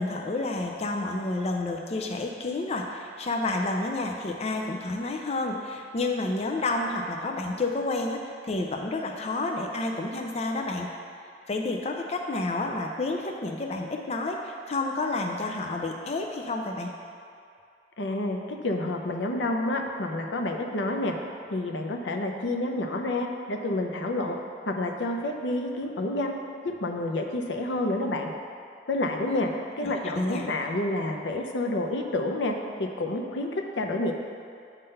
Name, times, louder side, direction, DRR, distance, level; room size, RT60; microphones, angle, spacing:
voice 1, 0.0-10.9 11.5-16.9 29.3-29.5 29.8-30.5, left 2 dB, 35° left, 2 dB, 0.4 m, -30 dB
voice 2, 18.0-21.2 21.5-24.4 24.6-26.4 26.6-28.3 28.9-29.5 29.8-34.1, left 2 dB, 85° left, 3 dB, 0.6 m, -29 dB
8.0 x 3.8 x 5.4 m, 2.4 s
head